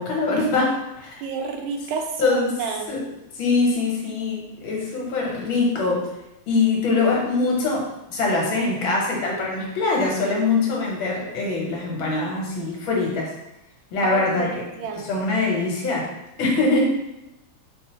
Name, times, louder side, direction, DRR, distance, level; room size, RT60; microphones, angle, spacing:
voice 1, 0.0-1.2 2.2-2.6 2.9-3.0 3.3-6.1 6.5-13.3 13.9-14.5 15.0-16.1 16.4-16.9, left 3 dB, 75° left, -2 dB, 1.7 m, -23 dB
voice 2, 1.2-3.0 14.0-14.5 14.8-15.1, right 5 dB, 80° right, 3 dB, 1.4 m, -30 dB
4.4 x 2.7 x 2.9 m, 0.92 s
omnidirectional pair, 2.3 m